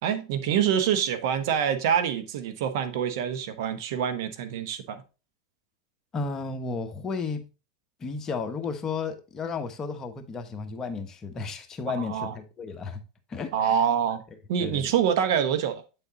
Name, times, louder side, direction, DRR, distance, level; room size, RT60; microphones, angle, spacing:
voice 1, 0.0-5.0 11.9-12.3 13.5-14.2 14.5-15.8, right 8 dB, 65° right, 1.0 m, -26 dB
voice 2, 6.1-7.5 8.0-13.0 13.3-13.7 14.6-14.9, left 4 dB, 25° left, 1.2 m, -33 dB
8.3 x 4.1 x 3.8 m
hypercardioid pair, 110°, 2 cm